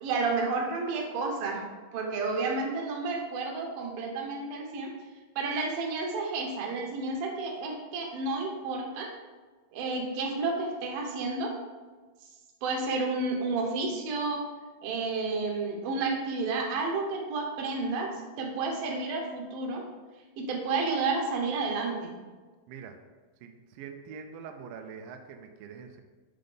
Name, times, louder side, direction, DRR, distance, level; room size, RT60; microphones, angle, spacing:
voice 1, 0.0-4.9 5.4-9.1 9.7-11.5 12.6-14.4 14.8-18.1 18.4-19.8 20.4-22.1, right 3 dB, 70° right, 0 dB, 2.6 m, -31 dB
voice 2, 23.4-26.0, right 6 dB, 85° right, 5 dB, 2.0 m, -44 dB
7.5 x 3.9 x 5.0 m, 1.3 s
omnidirectional pair, 4.7 m